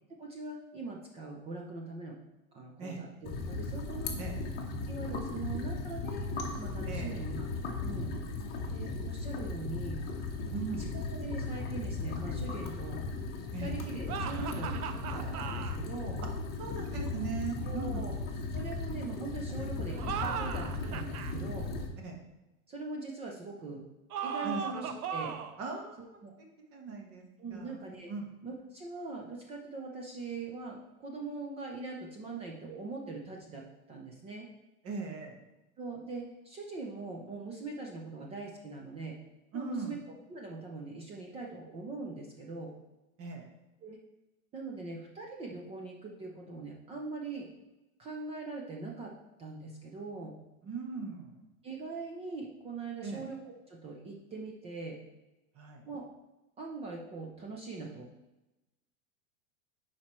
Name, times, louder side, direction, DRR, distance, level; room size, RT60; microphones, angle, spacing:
voice 1, 0.2-2.2 2.5-4.2 4.9-6.3 6.6-7.5 7.8-8.1 8.7-10.0 10.9-13.0 13.6-16.2 17.7-18.2 18.5-21.7 22.7-23.8 24.2-25.3 26.2-26.3 27.4-28.1 28.4-34.5 35.8-39.2 39.5-42.7 43.8-44.0 44.5-47.5 48.0-49.1 49.4-50.4 51.6-55.0 55.9-56.0 56.6-58.1, right 3 dB, 15° right, -1 dB, 0.4 m, -42 dB
sound 1, 3.2-21.9, left 3 dB, 20° left, 1.0 m, -36 dB
voice 2, 6.8-7.2 10.5-10.9 13.5-13.7 16.6-18.1 22.0-22.2 24.4-24.6 25.6-26.2 26.7-27.2 27.5-27.8 28.1-28.3 34.8-35.4 39.5-39.9 43.2-43.5 50.6-51.4 53.0-53.2 55.5-55.8, right 4 dB, 30° right, 2 dB, 1.2 m, -39 dB
sound 2, 14.1-15.8 19.9-21.3 24.1-25.6, right 7 dB, 90° right, 0.7 m, -37 dB
10.0 x 4.4 x 3.1 m, 1.0 s
supercardioid pair, 135°, 43 cm